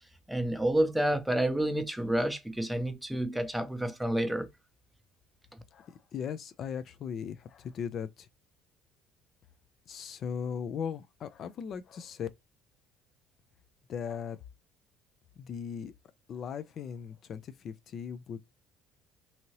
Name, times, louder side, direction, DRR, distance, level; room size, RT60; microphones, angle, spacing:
voice 1, 0.3-4.5 5.5-5.6, right 1 dB, 5° right, 0.6 m, -29 dB
voice 2, 5.7-8.3 9.9-12.3 13.9-14.4 15.4-15.9 16.3-18.4, left 7 dB, 55° left, 0.3 m, -38 dB
2.7 x 2.7 x 2.9 m
supercardioid pair, 85°, 0 cm